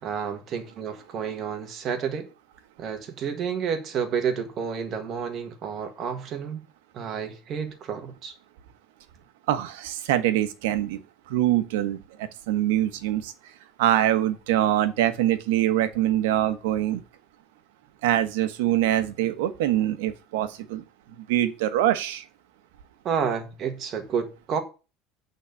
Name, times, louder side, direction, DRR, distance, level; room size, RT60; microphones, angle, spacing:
voice 1, 0.0-2.3 2.8-6.6 6.9-8.3 23.0-24.6, right 7 dB, 30° right, 1.5 m, -30 dB
voice 2, 9.5-11.0 11.3-13.3 13.8-17.0 18.0-20.8 21.3-22.2, right 13 dB, 90° right, 1.2 m, -24 dB
8.7 x 4.1 x 6.9 m
cardioid pair, 175°, 0 cm